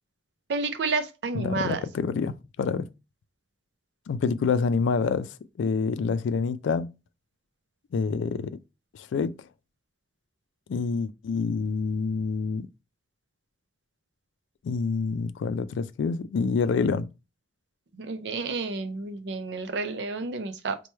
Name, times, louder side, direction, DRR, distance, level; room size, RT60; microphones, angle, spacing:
voice 1, 0.5-1.8 17.9-20.8, right 4 dB, 65° right, 0.5 m, -30 dB
voice 2, 1.3-2.9 4.1-5.3 5.6-6.9 7.9-8.6 8.9-9.4 10.7-12.7 14.6-17.1, left 5 dB, 90° left, 0.3 m, -27 dB
3.1 x 2.2 x 4.2 m
head